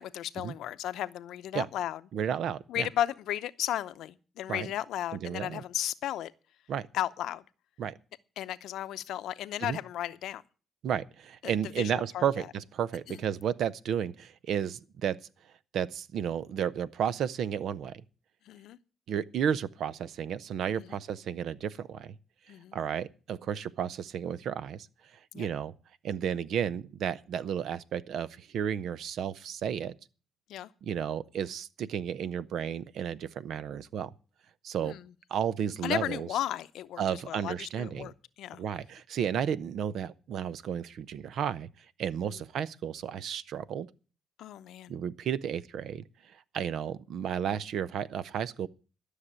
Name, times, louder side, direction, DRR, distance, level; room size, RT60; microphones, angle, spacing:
voice 1, 0.0-2.0 2.7-6.3 6.9-7.4 8.4-10.4 11.4-12.5 13.1-13.2 18.5-18.8 20.8-21.0 22.5-22.8 25.3-25.5 30.5-30.7 34.8-35.1 35.8-38.6 42.3-42.4 44.4-44.9, left 12 dB, 80° left, 0.7 m, -35 dB
voice 2, 2.1-2.9 4.5-4.7 5.1-5.6 6.7-6.9 7.8-7.9 9.6-9.8 10.8-15.2 15.7-18.0 19.1-22.2 22.7-24.9 25.3-25.7 26.0-29.9 30.8-34.1 34.6-34.9 35.3-36.3 37.0-38.1 38.6-41.7 42.0-43.9 44.9-46.0 46.5-48.7, right 8 dB, 70° right, 0.7 m, -32 dB
12.5 x 6.6 x 8.9 m
cardioid pair, 90°, 0 cm